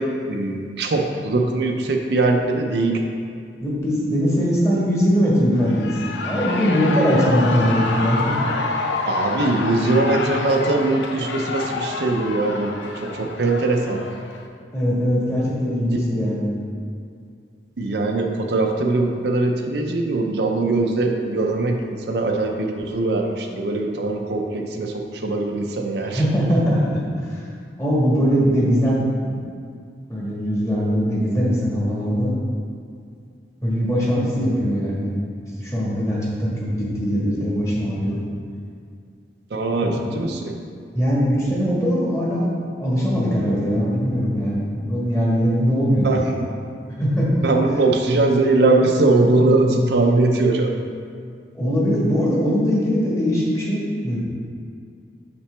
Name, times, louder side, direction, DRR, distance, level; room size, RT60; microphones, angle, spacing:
voice 1, 0.0-3.1 9.1-14.0 15.9-16.0 17.8-26.2 39.5-40.6 46.0-46.4 47.4-50.8, right 2 dB, 65° right, 2 dB, 0.5 m, -21 dB
voice 2, 3.6-8.4 14.7-16.5 26.0-27.4 27.8-29.4 30.1-32.3 33.6-35.1 35.6-38.2 39.8-40.2 40.9-42.5 42.8-46.1 47.0-47.3 51.5-54.2, equal, 15° left, -6 dB, 1.4 m, -21 dB
Shout / Cheering, 5.5-14.5, left 3 dB, 85° left, 0.6 m, -28 dB
6.8 x 5.7 x 3.3 m, 2.3 s
head